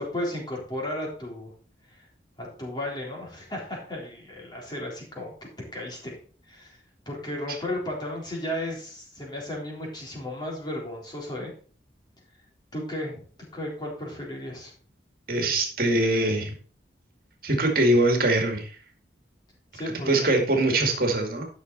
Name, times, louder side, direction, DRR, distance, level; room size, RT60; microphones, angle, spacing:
voice 1, 0.0-1.5 1.9-2.0 2.4-6.2 6.5-6.8 7.1-11.5 12.7-14.7 19.7-20.3, left 1 dB, 25° left, -2 dB, 3.7 m, -34 dB
voice 2, 15.3-16.5 17.4-18.8 20.1-21.4, right 1 dB, 50° right, 2 dB, 2.2 m, -22 dB
12.5 x 6.4 x 4.1 m, 0.42 s
head